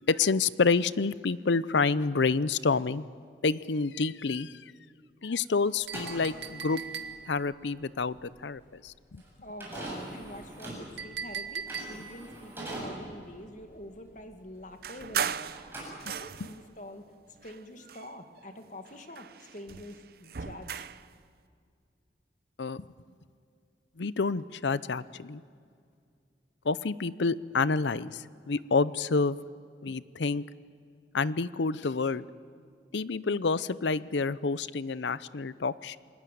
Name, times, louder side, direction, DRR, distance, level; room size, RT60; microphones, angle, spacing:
voice 1, 0.1-3.0 3.4-4.7 5.2-6.9 7.3-9.2 22.6-22.9 24.0-25.4 26.6-29.4 29.8-30.4 31.1-32.3 32.9-36.0, left 4 dB, 80° left, 18 dB, 0.7 m, -28 dB
sound 1, 5.8-15.2 15.5-16.5, right 1 dB, 10° right, 7.9 m, -43 dB
Chink clink, 5.9-7.5 11.0-12.3, right 6 dB, 75° right, 1.8 m, -39 dB
voice 2, 9.4-15.5 16.0-17.0 17.4-20.9, left 1 dB, 45° left, 6 dB, 2.2 m, -46 dB
sound 2, 14.8-16.7 17.4-18.5 18.9-21.1, right 7 dB, 55° right, 0.6 m, -37 dB
28.0 x 20.0 x 9.3 m, 2.3 s
head